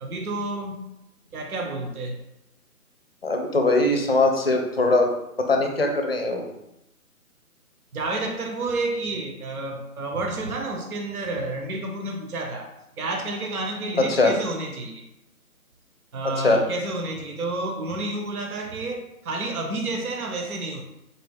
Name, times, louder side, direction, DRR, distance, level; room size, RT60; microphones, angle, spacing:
voice 1, 0.0-0.9 1.3-2.2 7.9-12.7 13.0-15.0 16.1-20.8, right 2 dB, 70° right, 3 dB, 0.7 m, -30 dB
voice 2, 3.2-5.1 5.5-6.5 14.1-14.3 16.4-16.6, left 2 dB, 40° left, 3 dB, 0.5 m, -21 dB
4.1 x 2.3 x 3.3 m, 0.86 s
figure-of-eight pair, 155°, 45 cm